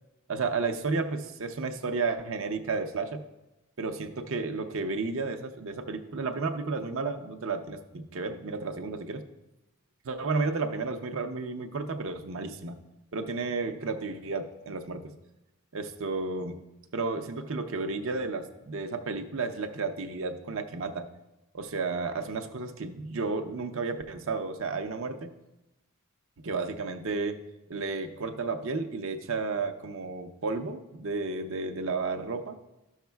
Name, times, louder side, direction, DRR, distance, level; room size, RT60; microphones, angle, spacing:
voice 1, 0.3-3.2 3.8-9.2 10.1-12.8 13.1-15.1 15.7-16.6 16.9-21.1 21.5-25.3 26.4-27.4 27.7-32.6, right 4 dB, 60° right, 7 dB, 0.6 m, -32 dB
13.0 x 6.4 x 2.3 m, 0.97 s
head